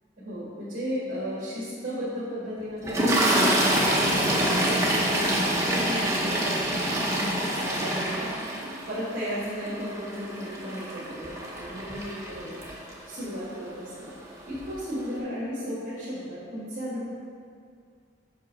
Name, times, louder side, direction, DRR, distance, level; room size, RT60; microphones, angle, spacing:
voice 1, 0.2-3.6 4.1-6.6 7.1-8.3 8.9-12.6 13.1-17.1, equal, 45° right, -9 dB, 1.6 m, -35 dB
Toilet flush, 2.8-13.2 14.1-14.3 14.5-14.7, right 1 dB, 15° right, 0.7 m, -26 dB
5.3 x 5.2 x 5.2 m, 2.2 s
head